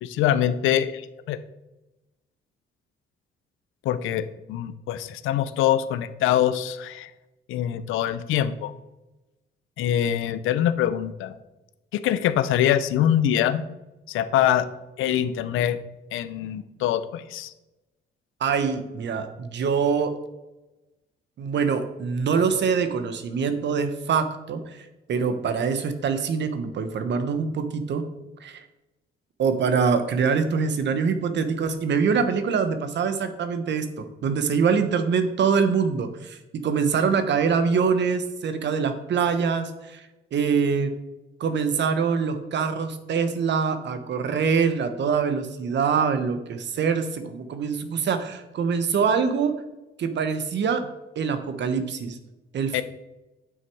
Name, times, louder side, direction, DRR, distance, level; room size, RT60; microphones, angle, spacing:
voice 1, 0.0-1.0 1.3-1.4 3.8-7.1 7.5-8.7 9.8-11.4 11.9-13.6 14.1-14.7 15.0-15.8 16.1-17.5 52.7-52.8, left 10 dB, 90° left, 13 dB, 0.7 m, -24 dB
voice 2, 18.4-20.2 21.4-28.0 28.4-28.7 29.4-40.9 41.4-49.6 50.0-50.8 51.1-52.2 52.5-52.8, right 6 dB, 65° right, 9 dB, 1.2 m, -24 dB
9.7 x 6.3 x 4.7 m, 1.0 s
cardioid pair, 90°, 20 cm